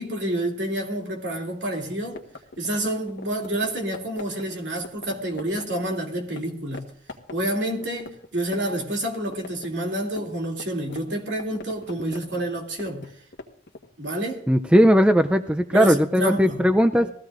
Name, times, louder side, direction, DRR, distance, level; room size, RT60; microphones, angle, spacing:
voice 1, 0.0-2.2 2.6-6.9 7.3-13.1 14.0-14.4 15.7-16.6 17.0-17.1, right 1 dB, 65° right, 2.8 m, -28 dB
sound 1, 1.8-6.4 6.7-6.8 7.1-8.8 9.1-13.9, left 2 dB, 60° left, 1.4 m, -41 dB
voice 2, 14.5-17.1, equal, 5° right, 0.4 m, -18 dB
20.5 x 15.5 x 2.5 m
head